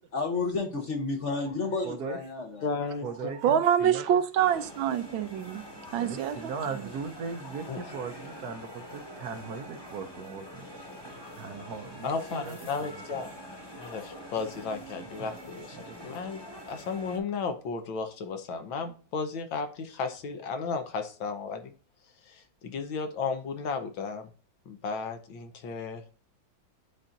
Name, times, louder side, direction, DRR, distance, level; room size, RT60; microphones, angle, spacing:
voice 1, 0.1-2.7, left 3 dB, 45° left, 1.1 m, -31 dB
voice 2, 1.8-2.2 3.0-4.2 6.0-10.7 11.0-13.3 15.2-15.3 15.7-16.0, right 5 dB, 65° right, 1.1 m, -39 dB
voice 3, 2.6-3.1 3.4-3.6 7.7-7.8 12.0-13.3 13.8-15.8 16.0-21.7 22.2-24.3 24.7-26.0, left 4 dB, 75° left, 1.7 m, -34 dB
voice 4, 3.4-5.6 5.9-6.5 6.8-6.9, right 9 dB, 80° right, 1.5 m, -26 dB
sound 1, 4.4-17.2, equal, 15° left, 1.2 m, -45 dB
9.8 x 4.3 x 2.6 m
omnidirectional pair, 2.2 m